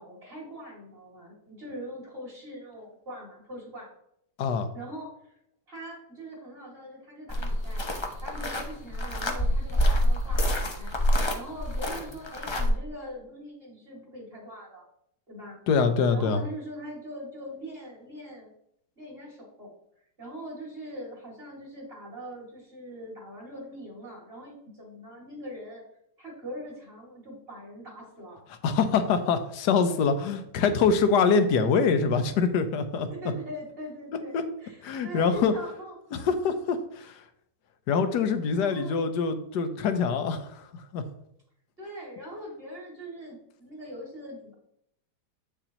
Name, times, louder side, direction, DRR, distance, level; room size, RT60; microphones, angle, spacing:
voice 1, 0.0-3.9 4.7-5.4 5.7-11.0 11.3-14.8 15.3-15.6 16.1-18.5 19.0-19.7 20.2-25.8 26.2-28.4 31.5-31.7 33.1-36.0 38.5-39.0 41.8-44.5, equal, 35° right, -2 dB, 2.8 m, -42 dB
sound 1, 7.3-12.7, equal, 40° left, 0.3 m, -27 dB
voice 2, 15.7-16.4 28.6-33.1 34.3-34.4 34.8-35.5 36.1-37.2 37.9-41.0, left 5 dB, 75° left, 9 dB, 1.4 m, -24 dB
8.2 x 6.9 x 2.9 m, 0.73 s
omnidirectional pair, 1.9 m